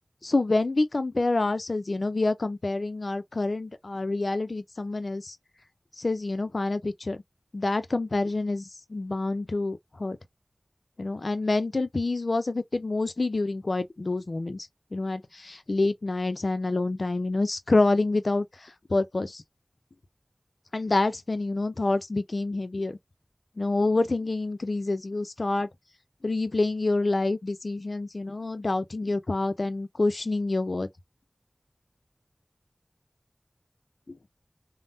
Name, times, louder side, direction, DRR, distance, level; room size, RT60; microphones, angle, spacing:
voice 1, 0.2-5.4 6.0-7.2 7.5-10.2 11.0-19.4 20.7-23.0 23.6-25.7 26.2-30.9 34.1-34.2, left 2 dB, 75° left, 0.4 m, -27 dB
3.5 x 2.1 x 2.5 m
wide cardioid pair, 45°, 0 cm